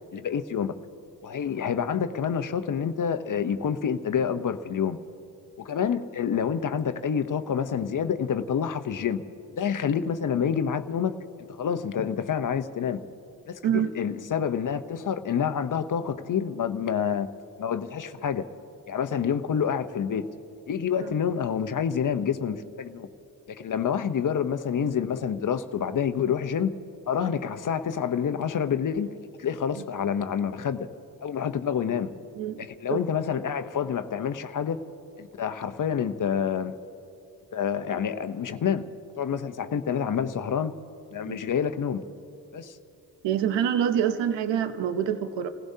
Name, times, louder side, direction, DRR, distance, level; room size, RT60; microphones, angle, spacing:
voice 1, 0.1-0.7 1.2-5.0 5.6-9.2 9.6-11.2 11.6-13.0 13.5-17.3 17.6-18.5 18.9-20.3 20.7-23.1 23.5-26.7 27.1-29.1 29.4-30.9 31.2-32.1 32.6-34.8 35.2-36.7 37.5-38.9 39.2-40.8 41.1-42.0 42.5-42.8, left 7 dB, 45° left, 10 dB, 0.8 m, -28 dB
voice 2, 32.4-33.0 41.2-41.4 43.2-45.5, right 9 dB, 85° right, 11 dB, 0.8 m, -26 dB
29.0 x 16.0 x 2.8 m, 2.8 s
supercardioid pair, 60°, 43 cm